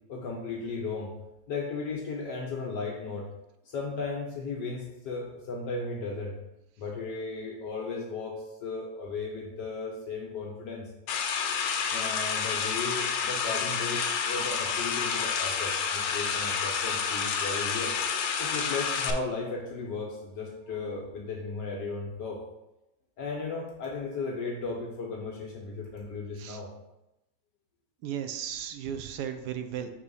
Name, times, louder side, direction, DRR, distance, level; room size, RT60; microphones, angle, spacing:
voice 1, 0.1-1.1 1.5-3.3 3.6-6.4 6.8-10.9 11.9-17.9 18.4-22.4 23.2-26.7, left 3 dB, 75° left, -1 dB, 1.4 m, -35 dB
sound 1, 11.1-19.1, left 6 dB, 90° left, 1.4 m, -29 dB
voice 2, 28.0-29.9, right 9 dB, 70° right, 8 dB, 1.1 m, -35 dB
5.3 x 3.5 x 5.3 m, 0.92 s
omnidirectional pair, 1.9 m